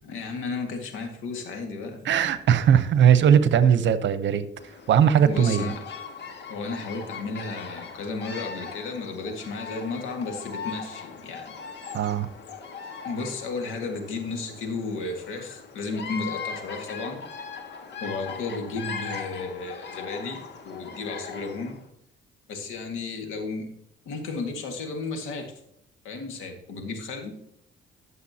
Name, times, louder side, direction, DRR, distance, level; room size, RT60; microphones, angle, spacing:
voice 1, 0.0-2.1 5.2-5.9 6.5-11.5 13.0-17.2 18.0-20.4 20.6-21.8 22.5-23.7 24.1-25.5 26.0-27.4, left 3 dB, 90° left, 4 dB, 1.9 m, -33 dB
voice 2, 2.0-4.5 4.9-5.7 11.9-12.3, right 8 dB, 65° right, 13 dB, 0.9 m, -19 dB
Bird vocalization bird call bird song, 4.6-21.8, left 6 dB, 60° left, 1.6 m, -39 dB
12.5 x 6.9 x 2.8 m, 0.76 s
cardioid pair, 90°, 20 cm